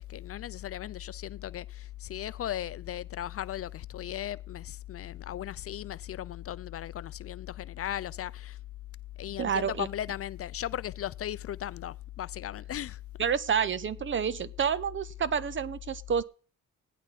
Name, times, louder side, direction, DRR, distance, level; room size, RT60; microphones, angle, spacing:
voice 1, 0.1-8.6 9.2-13.0, left 11 dB, 50° left, 0.5 m, -37 dB
voice 2, 9.4-9.9 13.2-16.2, right 7 dB, 40° right, 0.8 m, -29 dB
17.0 x 10.5 x 4.1 m
cardioid pair, 90°, 30 cm